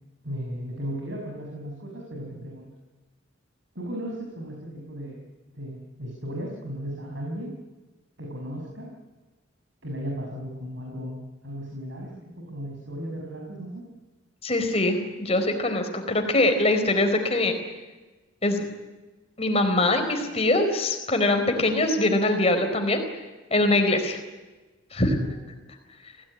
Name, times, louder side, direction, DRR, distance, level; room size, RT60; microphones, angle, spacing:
voice 1, 0.2-2.7 3.7-5.2 5.5-7.5 8.2-8.9 9.8-12.1 12.5-13.8 25.0-25.3, equal, 65° right, -1 dB, 6.0 m, -35 dB
voice 2, 14.4-17.5 18.4-18.6 19.4-23.0 23.5-24.2 24.9-25.2, left 2 dB, 30° left, 6 dB, 4.2 m, -23 dB
27.5 x 17.5 x 9.9 m, 1.2 s
head